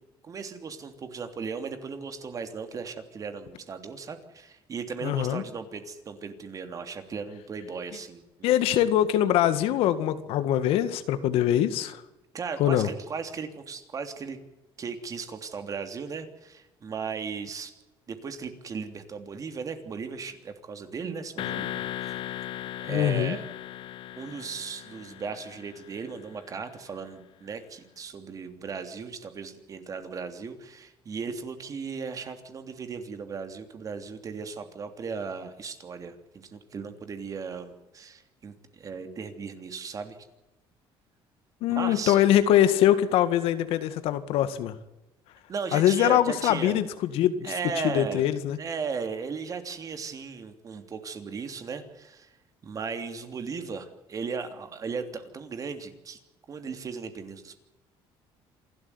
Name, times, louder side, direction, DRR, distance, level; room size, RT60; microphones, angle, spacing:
voice 1, 0.2-8.6 12.3-14.4 14.8-17.7 18.1-22.2 22.8-23.4 24.2-36.1 36.4-40.2 41.7-42.2 45.5-46.8 47.4-48.3 48.6-52.3 52.6-56.2 56.5-57.6, right 5 dB, 35° right, 8 dB, 3.2 m, -36 dB
voice 2, 5.0-5.4 8.4-12.0 12.6-12.9 22.9-23.4 41.6-44.7 45.7-47.5 47.8-48.6, left 11 dB, 75° left, 12 dB, 2.0 m, -23 dB
sound 1, 21.4-26.3, left 12 dB, 60° left, 0.9 m, -37 dB
27.0 x 12.5 x 9.6 m, 1.0 s
cardioid pair, 125°, 10 cm